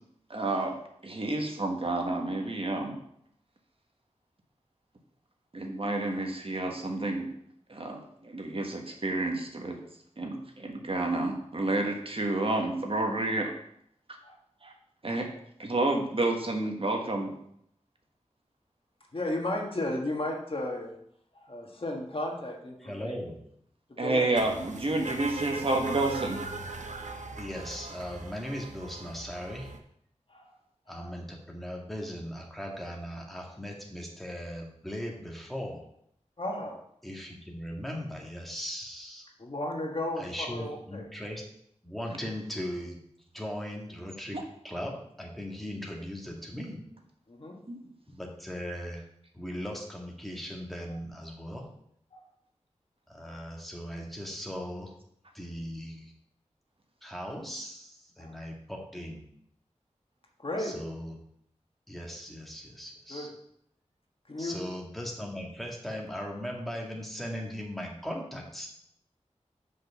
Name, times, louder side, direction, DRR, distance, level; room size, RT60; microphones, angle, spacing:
voice 1, 0.3-2.9 5.5-7.3 7.7-9.8 10.2-13.5 14.6-14.7 15.0-15.3 15.6-17.3 24.0-26.4 47.7-47.8, right 2 dB, 50° right, 2 dB, 1.4 m, -30 dB
voice 2, 19.1-20.9 21.4-23.1 24.0-24.3 30.3-30.4 30.9-31.0 36.4-36.8 39.4-41.0 47.3-47.6 52.1-52.2 58.2-58.3 60.4-60.7 63.1-63.3 64.3-64.6, left 1 dB, 50° left, 0 dB, 1.7 m, -34 dB
voice 3, 22.8-23.4 27.4-29.7 30.9-35.8 37.0-39.3 40.2-41.4 41.8-43.0 43.3-46.9 48.1-49.1 49.3-51.7 53.1-54.9 55.3-56.1 57.0-59.2 60.6-61.2 61.9-63.3 64.4-68.7, equal, ahead, -1 dB, 1.9 m, -38 dB
sound 1, 24.3-29.8, right 3 dB, 80° right, 0.9 m, -39 dB
6.1 x 5.5 x 6.9 m, 0.71 s
wide cardioid pair, 75°, 12 cm